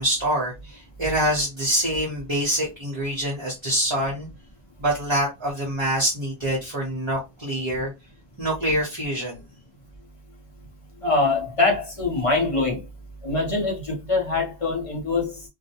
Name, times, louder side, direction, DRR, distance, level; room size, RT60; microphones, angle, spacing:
voice 1, 0.0-4.3 4.8-7.9 8.4-9.4, right 1 dB, 30° right, 0.8 m, -25 dB
voice 2, 11.0-12.8 13.2-15.4, left 3 dB, 35° left, 0.7 m, -23 dB
2.4 x 2.1 x 2.7 m
omnidirectional pair, 1.0 m